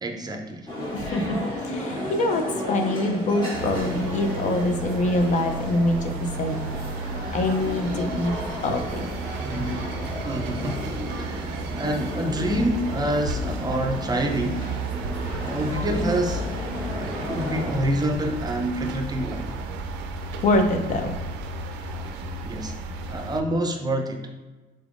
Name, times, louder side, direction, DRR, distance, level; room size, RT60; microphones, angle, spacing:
voice 1, 0.0-0.7 10.2-14.6 15.4-16.4 16.9-19.5 22.4-22.7 23.1-24.3, right 1 dB, 25° right, 3 dB, 0.5 m, -27 dB
sound 1, 0.7-17.9, left 1 dB, 25° left, 1.3 m, -34 dB
voice 2, 0.9-6.6 7.3-9.1 20.4-21.2, left 2 dB, 45° left, 6 dB, 0.5 m, -24 dB
sound 2, 3.5-23.4, right 2 dB, 90° right, 0.4 m, -33 dB
3.9 x 3.4 x 2.5 m, 1.2 s
cardioid pair, 110°, 17 cm